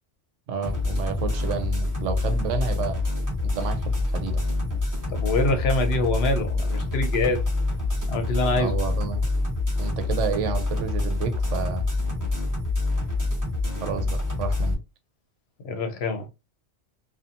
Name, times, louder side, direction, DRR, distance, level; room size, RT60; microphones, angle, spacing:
voice 1, 0.5-3.0 3.4-4.4 8.5-9.3 9.8-11.9 13.8-14.8, right 6 dB, 85° right, 0.9 m, -30 dB
sound 1, 0.6-14.7, left 2 dB, 20° right, 0.7 m, -26 dB
voice 2, 5.1-7.4 8.1-8.8 15.6-16.3, left 2 dB, 65° left, 0.8 m, -25 dB
2.7 x 2.3 x 2.5 m
omnidirectional pair, 1.2 m